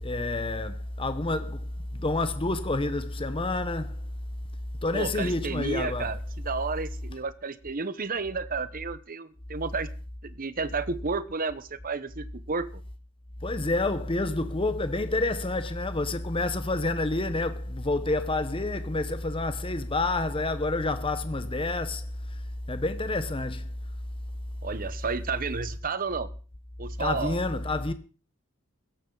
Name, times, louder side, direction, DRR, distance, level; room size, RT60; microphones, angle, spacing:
voice 1, 0.0-4.0 4.8-6.1 13.4-22.0 22.7-23.7 27.0-27.9, left 2 dB, 25° left, 1.0 m, -28 dB
voice 2, 4.9-9.9 10.2-12.7 24.6-26.3 26.8-27.4, right 4 dB, 40° right, 1.0 m, -32 dB
16.5 x 13.5 x 4.0 m
head